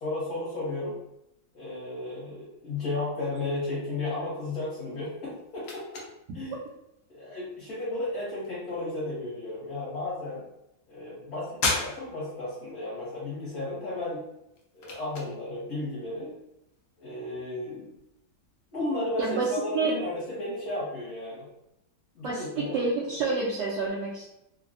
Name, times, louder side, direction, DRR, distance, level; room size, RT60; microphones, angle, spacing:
voice 1, 0.0-1.0 1.5-6.0 6.3-6.6 7.1-10.4 10.9-14.2 14.7-16.3 17.0-17.9 18.7-21.5 22.1-22.7, left 2 dB, 60° left, -8 dB, 1.2 m, -34 dB
sound 1, 4.8-19.3, left 3 dB, 80° left, 0.7 m, -40 dB
voice 2, 19.2-19.5 19.7-19.9 22.2-24.3, right 4 dB, 70° right, -7 dB, 1.1 m, -28 dB
3.3 x 2.2 x 2.5 m, 0.84 s
omnidirectional pair, 2.1 m